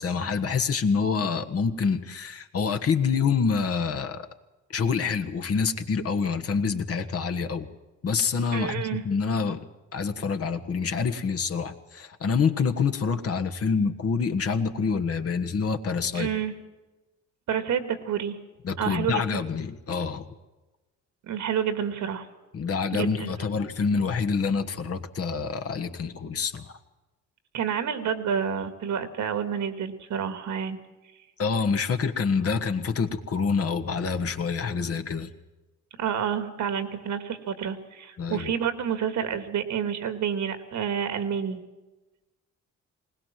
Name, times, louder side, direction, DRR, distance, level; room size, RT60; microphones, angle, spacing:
voice 1, 0.0-4.3 4.7-7.7 8.0-9.6 9.9-16.3 18.6-20.3 22.5-26.7 31.4-35.3 38.2-38.5, left 5 dB, 50° left, 7 dB, 1.6 m, -27 dB
voice 2, 8.5-9.0 16.1-16.5 17.5-18.4 18.8-19.2 21.2-22.3 22.9-23.3 27.5-30.8 36.0-41.6, right 8 dB, 70° right, 10 dB, 2.1 m, -29 dB
21.0 x 19.0 x 7.6 m, 1.1 s
cardioid pair, 90°, 30 cm